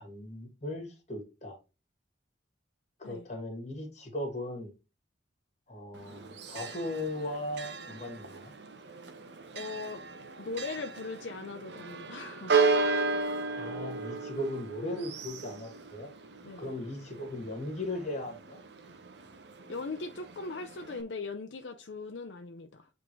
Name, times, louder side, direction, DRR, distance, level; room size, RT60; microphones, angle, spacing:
voice 1, 0.0-1.6 3.0-4.7 5.7-8.5 13.5-16.1 16.6-18.6, left 1 dB, 40° left, 2.0 m, -38 dB
Church bell, 5.9-21.0, right 4 dB, 65° right, 0.9 m, -35 dB
voice 2, 9.5-10.0 10.4-12.6 16.4-16.7 19.7-22.9, left 3 dB, 70° left, 0.6 m, -39 dB
8.4 x 3.6 x 3.1 m
head